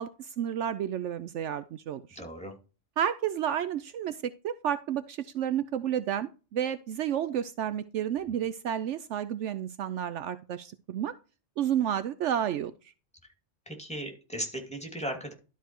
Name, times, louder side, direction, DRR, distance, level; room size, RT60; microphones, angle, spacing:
voice 1, 0.0-2.2 3.0-4.2 4.4-11.1 11.6-12.7, right 9 dB, 70° right, 0.9 m, -31 dB
voice 2, 2.1-2.5 8.3-8.4 13.7-15.3, right 1 dB, 5° left, 2.5 m, -37 dB
12.0 x 4.7 x 4.5 m
omnidirectional pair, 1.3 m